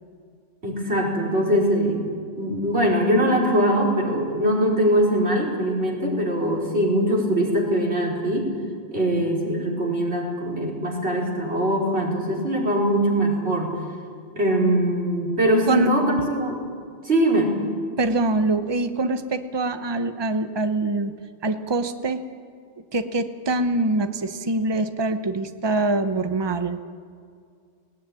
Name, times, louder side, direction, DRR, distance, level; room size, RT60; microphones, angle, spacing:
voice 1, 0.6-2.0 2.4-8.5 8.9-13.8 14.4-16.6 17.0-17.5, right 1 dB, 80° right, -2 dB, 4.8 m, -22 dB
voice 2, 18.0-21.1 21.4-22.2 22.9-26.8, right 2 dB, 25° right, 9 dB, 0.9 m, -24 dB
20.0 x 18.0 x 9.9 m, 2.1 s
omnidirectional pair, 1.1 m